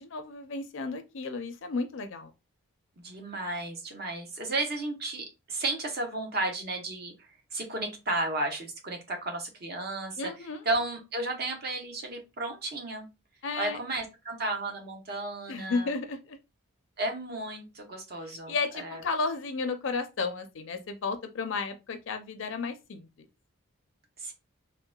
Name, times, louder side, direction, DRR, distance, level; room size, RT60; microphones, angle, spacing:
voice 1, 0.0-2.3 10.2-10.6 13.4-13.8 15.5-16.4 18.3-23.1, left 4 dB, 65° left, 0.5 m, -33 dB
voice 2, 3.0-10.3 10.6-13.1 13.6-15.9 17.0-19.0 24.2-24.3, right 2 dB, 45° right, 0.7 m, -33 dB
3.7 x 2.1 x 2.2 m
head